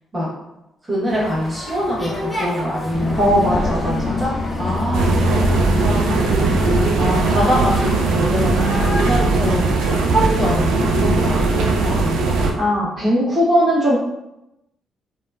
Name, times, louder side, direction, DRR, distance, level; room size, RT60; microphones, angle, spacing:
voice 1, 0.9-3.2 4.0-4.3 4.6-5.1 5.8-11.5 11.8-12.2, equal, 15° right, -8 dB, 1.2 m, -24 dB
sound 1, 1.1-9.0, left 1 dB, 10° left, 0.7 m, -32 dB
sound 2, 2.9-12.1, left 1 dB, 40° left, 0.5 m, -26 dB
voice 2, 3.2-4.1 12.5-14.0, equal, 40° right, -9 dB, 1.1 m, -18 dB
sound 3, 4.9-12.5, right 3 dB, 85° right, 0.3 m, -19 dB
2.8 x 2.1 x 2.3 m, 0.91 s
cardioid pair, 90°, 0 cm